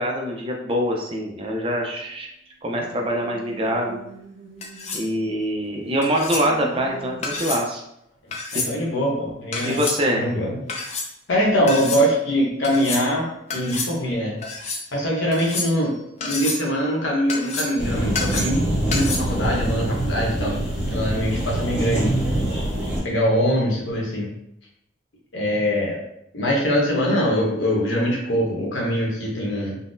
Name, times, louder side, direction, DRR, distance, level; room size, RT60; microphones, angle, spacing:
voice 1, 0.0-2.3 2.6-4.0 4.9-7.8 8.5-8.8 9.6-10.2, equal, 30° right, 0 dB, 0.4 m, -24 dB
sound 1, 2.7-5.5 5.9-7.4, right 2 dB, 90° right, 0.5 m, -43 dB
sound 2, 4.6-5.1 6.0-6.5 7.2-7.7 8.3-8.7 9.5-10.0 10.7-11.1 11.7-12.0 12.6-13.1 13.5-13.9 14.4-14.8 15.3-15.9 16.2-16.7 17.3-17.8 18.1-18.6 18.9-19.2, left 3 dB, 35° left, 0.4 m, -29 dB
voice 2, 8.5-9.8 10.1-10.7 11.3-14.4 14.9-16.0 16.2-18.6 18.9-20.5 20.9-22.3 23.0-24.3 25.3-26.0 26.3-29.7, equal, 75° left, -2 dB, 0.9 m, -23 dB
sound 3, 17.8-23.0, right 1 dB, 5° right, 0.8 m, -24 dB
3.8 x 2.0 x 2.5 m, 0.77 s
head